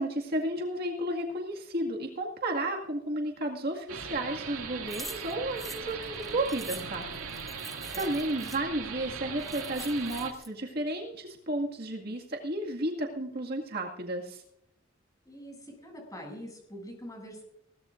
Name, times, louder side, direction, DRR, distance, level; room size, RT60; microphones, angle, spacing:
voice 1, 0.0-7.1 7.9-14.4, right 1 dB, 45° right, 0 dB, 2.0 m, -32 dB
sound 1, 3.9-10.3, right 6 dB, 80° right, 2.3 m, -39 dB
sound 2, 4.9-8.6 9.1-9.2 9.4-10.5, equal, ahead, 1.1 m, -45 dB
sound 3, 6.7-11.7, left 3 dB, 65° left, 7.4 m, -55 dB
voice 2, 15.3-17.4, equal, 15° left, 1 dB, 7.5 m, -44 dB
21.5 x 17.0 x 2.6 m, 0.74 s
head